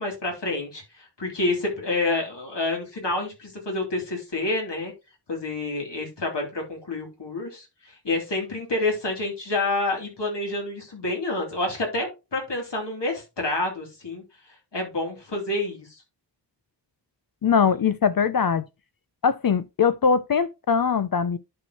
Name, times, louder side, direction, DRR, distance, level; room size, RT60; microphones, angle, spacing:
voice 1, 0.0-4.9 5.3-14.2 14.7-15.9, left 2 dB, 75° left, 3.1 m, -28 dB
voice 2, 17.4-18.6 19.2-21.4, left 6 dB, 55° left, 0.5 m, -21 dB
11.0 x 4.5 x 2.9 m
wide cardioid pair, 75°, 43 cm